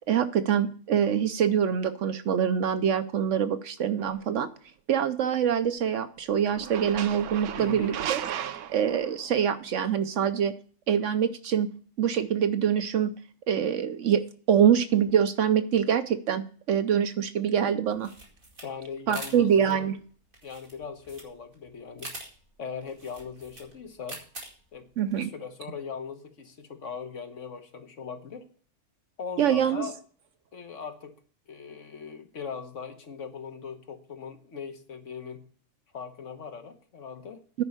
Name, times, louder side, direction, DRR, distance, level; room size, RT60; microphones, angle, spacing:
voice 1, 0.1-4.5 4.9-8.2 8.7-10.5 10.9-11.7 12.0-13.1 13.5-18.1 19.1-19.9 25.0-25.3 29.4-29.9 37.6-37.7, right 8 dB, 65° right, 11 dB, 0.9 m, -25 dB
sound 1, 4.0-4.2 6.5-9.4, right 10 dB, 80° right, 1.2 m, -35 dB
voice 2, 7.6-8.2 18.6-19.9 20.4-22.1 22.6-24.2 24.7-24.9 25.1-28.5 29.2-29.9 30.5-31.2 31.5-35.4 35.9-37.4, left 6 dB, 55° left, 7 dB, 1.5 m, -39 dB
sound 2, 17.9-25.2, right 2 dB, 35° right, 2.4 m, -45 dB
9.7 x 5.3 x 8.0 m, 0.43 s
omnidirectional pair, 1.5 m